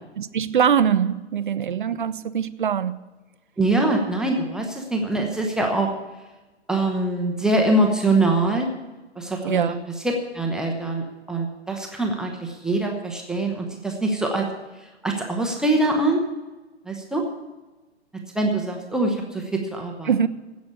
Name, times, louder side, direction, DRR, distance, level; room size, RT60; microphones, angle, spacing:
voice 1, 0.2-3.0 9.4-9.8 20.1-20.3, right 8 dB, 45° right, 15 dB, 0.6 m, -22 dB
voice 2, 3.6-5.9 6.7-8.7 9.2-9.6 10.0-14.5 15.0-16.2 16.9-17.2 18.3-20.1, right 2 dB, ahead, 1 dB, 0.6 m, -23 dB
16.0 x 6.1 x 8.4 m, 1.2 s
figure-of-eight pair, 125°, 34 cm